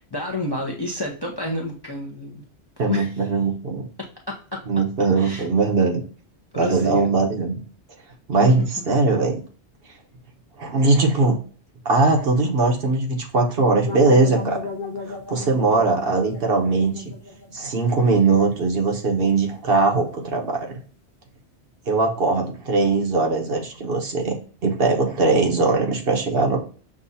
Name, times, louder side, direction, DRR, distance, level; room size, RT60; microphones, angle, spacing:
voice 1, 0.1-2.4 2.9-3.1 4.3-4.6 5.2-5.5 6.5-7.1 8.4-8.5, left 2 dB, 30° left, 0 dB, 0.6 m, -29 dB
voice 2, 2.8-3.9 4.7-6.0 6.5-7.6 8.3-9.4 10.6-11.4 11.8-14.6 15.1-17.1 17.5-20.7 21.9-24.3 24.6-26.6, right 3 dB, 60° right, 1 dB, 1.1 m, -20 dB
sound 1, 13.8-18.8, left 4 dB, 45° left, 1.5 m, -34 dB
6.2 x 2.3 x 2.6 m, 0.40 s
omnidirectional pair, 1.2 m